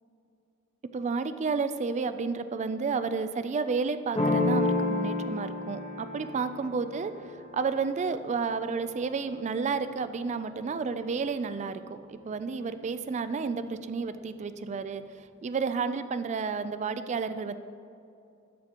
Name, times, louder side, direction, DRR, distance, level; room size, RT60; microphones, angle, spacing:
voice 1, 0.9-7.1 7.5-17.5, right 5 dB, 30° right, 12 dB, 0.3 m, -31 dB
sound 1, 4.1-9.7, left 2 dB, 25° left, 1.3 m, -31 dB
12.5 x 6.9 x 2.9 m, 2.6 s
head